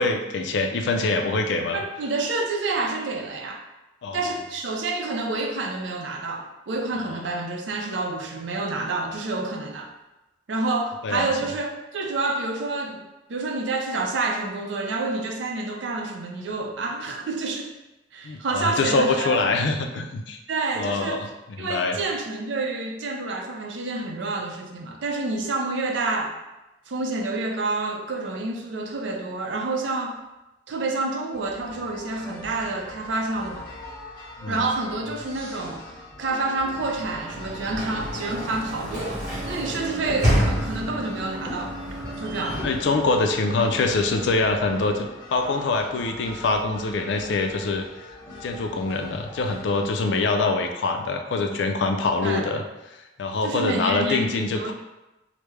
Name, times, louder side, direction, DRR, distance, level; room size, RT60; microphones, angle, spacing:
voice 1, 0.0-1.8 4.0-4.2 11.0-11.3 18.2-20.4 20.8-21.3 21.6-22.0 34.4-34.6 42.6-47.8 48.4-52.6 53.2-54.7, left 3 dB, 75° left, 4 dB, 0.4 m, -24 dB
voice 2, 1.7-3.6 4.1-9.9 10.5-17.7 18.1-19.6 20.5-21.2 21.6-26.4 26.9-30.2 30.7-33.7 34.5-35.8 36.2-41.7 42.2-42.7 52.2-52.5 53.4-54.7, right 3 dB, 80° right, 2 dB, 0.5 m, -28 dB
sound 1, 31.3-49.9, left 1 dB, 25° left, 1.0 m, -41 dB
Sliding door / Slam, 36.8-43.8, equal, 40° right, 1.1 m, -29 dB
3.5 x 2.0 x 3.1 m, 0.99 s
head